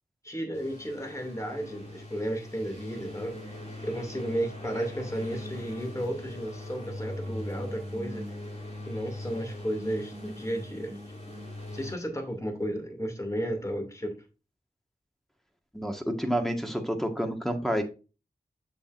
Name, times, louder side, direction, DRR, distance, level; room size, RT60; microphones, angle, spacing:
voice 1, 0.2-3.3 3.8-8.3 8.9-11.0 11.7-14.1, right 1 dB, 20° left, 4 dB, 2.4 m, -33 dB
sound 1, 0.5-11.9, left 1 dB, 45° left, 3.5 m, -40 dB
voice 2, 15.7-17.8, equal, ahead, 3 dB, 1.5 m, -29 dB
7.3 x 6.7 x 2.5 m, 0.31 s
cardioid pair, 50°, 16 cm